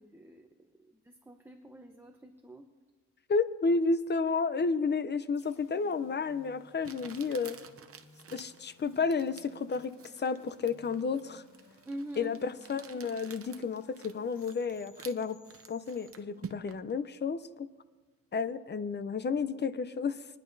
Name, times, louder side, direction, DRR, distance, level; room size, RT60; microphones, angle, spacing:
voice 1, 0.0-2.7 11.8-12.4, right 1 dB, 10° right, 4 dB, 0.8 m, -45 dB
voice 2, 3.3-7.6 8.3-11.4 12.2-15.4 15.7-17.7 18.3-20.3, left 4 dB, 35° left, 14 dB, 0.6 m, -31 dB
sound 1, 5.3-16.1, left 2 dB, 75° left, 4.8 m, -61 dB
Crumpling crinkling, 5.9-6.0 6.8-16.9, right 6 dB, 50° right, 0.7 m, -51 dB
22.0 x 10.5 x 2.7 m, 1.3 s
cardioid pair, 80°, 30 cm